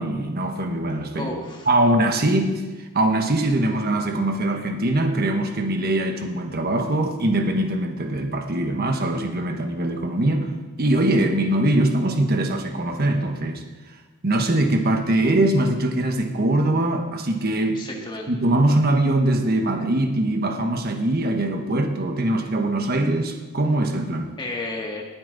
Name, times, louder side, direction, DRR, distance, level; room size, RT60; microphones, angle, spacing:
voice 1, 0.0-1.3 1.7-2.6 2.9-10.5 10.8-13.6 14.2-17.8 18.3-24.3, right 1 dB, 45° right, 5 dB, 1.3 m, -22 dB
voice 2, 1.1-1.7 17.7-18.4 24.4-25.0, left 2 dB, 20° left, 0 dB, 1.9 m, -32 dB
19.0 x 8.7 x 4.1 m, 1.2 s
head